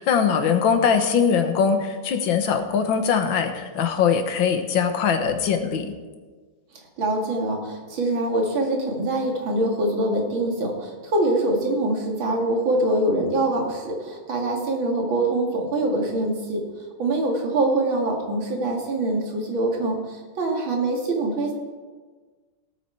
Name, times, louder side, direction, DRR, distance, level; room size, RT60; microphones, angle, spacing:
voice 1, 0.0-5.9, left 6 dB, 80° left, 7 dB, 1.9 m, -21 dB
voice 2, 7.0-16.6 17.0-21.5, right 2 dB, 90° right, 1 dB, 2.8 m, -24 dB
18.0 x 8.5 x 4.5 m, 1.4 s
omnidirectional pair, 2.1 m